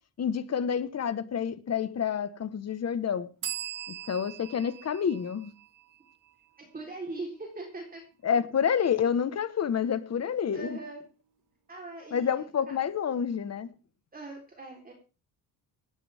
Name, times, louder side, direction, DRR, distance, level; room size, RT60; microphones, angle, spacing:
voice 1, 0.2-3.3 4.1-5.5 8.2-10.8 12.1-13.7, left 7 dB, 35° left, 1.4 m, -28 dB
sound 1, 3.4-7.0, right 11 dB, 45° right, 2.2 m, -41 dB
voice 2, 6.6-8.0 10.5-11.0 11.7-12.3 14.1-14.9, right 2 dB, 20° right, 4.1 m, -40 dB
18.5 x 14.5 x 3.6 m
cardioid pair, 140°, 43 cm